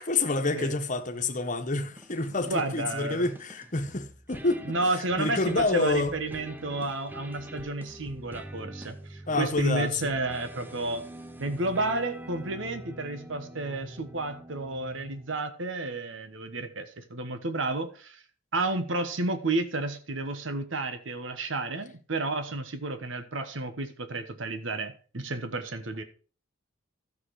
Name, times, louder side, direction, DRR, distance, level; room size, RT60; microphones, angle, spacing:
voice 1, 0.0-6.1 9.3-10.1, left 2 dB, 40° left, 1.3 m, -28 dB
sound 1, 2.0-15.5, equal, 10° right, 0.8 m, -45 dB
voice 2, 2.3-3.3 4.6-11.1 11.4-18.2 18.5-26.0, right 2 dB, 75° right, 1.3 m, -31 dB
13.0 x 6.8 x 4.8 m
head